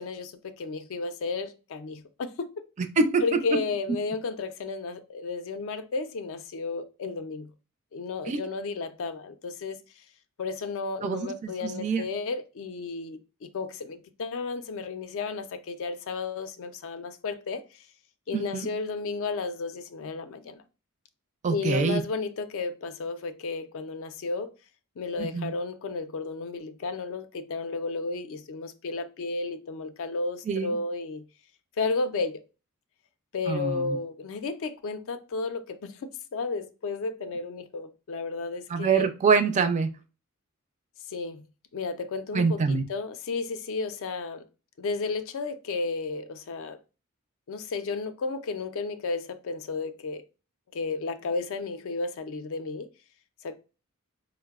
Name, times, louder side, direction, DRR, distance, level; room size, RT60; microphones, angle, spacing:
voice 1, 0.0-2.5 3.2-7.5 7.9-9.8 10.4-17.8 18.3-20.6 21.5-24.5 25.0-31.2 31.8-32.4 33.3-39.1 41.1-41.4 41.7-44.4 44.8-46.8 47.5-50.2 50.7-52.9 53.4-53.6, left 4 dB, 65° left, 0.4 m, -33 dB
voice 2, 11.0-12.1 18.3-18.7 21.4-22.0 25.2-25.5 30.5-30.7 33.5-34.0 38.7-39.9 42.3-42.8, right 5 dB, 35° right, 0.3 m, -25 dB
4.5 x 2.0 x 2.3 m
head